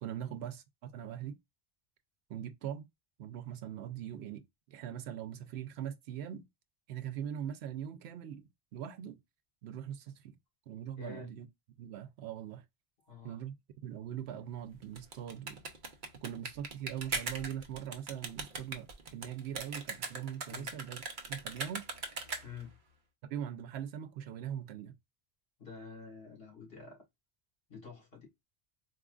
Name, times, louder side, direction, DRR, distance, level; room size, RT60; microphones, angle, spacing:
voice 1, 0.0-1.4 2.3-2.9 3.2-6.5 6.9-9.2 9.6-10.4 10.7-11.5 11.8-12.6 13.2-13.5 13.8-15.6 16.1-21.0 21.3-21.9 23.2-24.9, right 10 dB, 90° right, 0.9 m, -41 dB
voice 2, 11.0-11.3 13.1-13.4 20.5-20.7 22.4-22.7 25.6-27.0 27.7-28.3, left 5 dB, 65° left, 2.1 m, -48 dB
sound 1, 14.8-22.7, right 4 dB, 55° right, 0.8 m, -40 dB
4.2 x 2.4 x 2.3 m
omnidirectional pair, 1.1 m